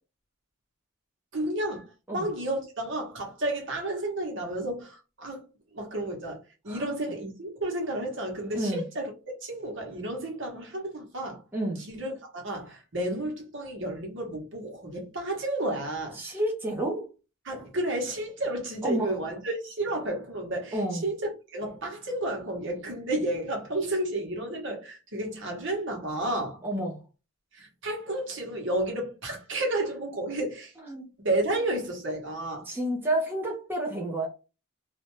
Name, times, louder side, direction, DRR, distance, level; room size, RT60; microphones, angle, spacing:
voice 1, 1.3-5.5 5.7-6.4 6.6-9.1 9.4-11.4 11.8-16.2 17.4-26.6 27.5-30.7 31.2-32.7, right 1 dB, 60° right, 1.1 m, -32 dB
voice 2, 11.5-11.8 16.2-17.1 18.8-19.1 20.7-21.0 26.6-27.0 30.8-31.0 32.7-34.3, right 1 dB, 10° right, 0.7 m, -29 dB
2.7 x 2.2 x 3.1 m
head